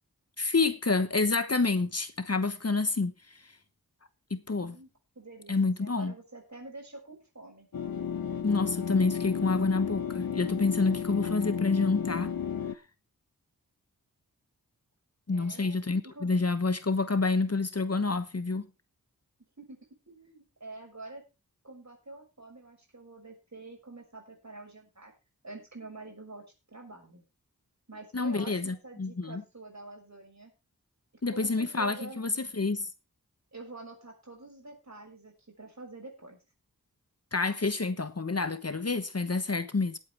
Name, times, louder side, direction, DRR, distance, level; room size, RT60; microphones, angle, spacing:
voice 1, 0.4-3.4 4.3-4.8 5.5-6.1 8.4-12.3 15.3-18.7 28.1-29.4 31.2-32.9 37.3-40.0, left 3 dB, 45° left, 1.2 m, -28 dB
voice 2, 4.6-4.9 5.1-7.7 15.3-15.8 16.0-16.5 19.6-19.8 20.1-21.2 21.6-25.1 25.4-26.4 26.7-27.2 27.9-30.5 31.3-32.2 33.5-36.4, right 2 dB, 50° right, 6.4 m, -47 dB
sound 1, 7.7-12.7, left 7 dB, 70° left, 0.9 m, -33 dB
18.5 x 8.5 x 3.5 m
wide cardioid pair, 40°, 36 cm